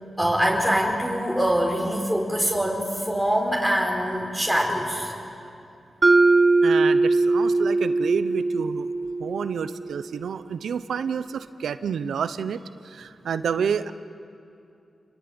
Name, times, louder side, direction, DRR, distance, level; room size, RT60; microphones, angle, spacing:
voice 1, 0.2-5.1, equal, ahead, -1 dB, 4.8 m, -24 dB
Mallet percussion, 6.0-10.0, right 3 dB, 40° right, 0.8 m, -21 dB
voice 2, 6.6-8.9 9.2-13.9, right 7 dB, 90° right, 12 dB, 0.8 m, -29 dB
29.0 x 22.0 x 8.9 m, 2.6 s
cardioid pair, 65°, 0 cm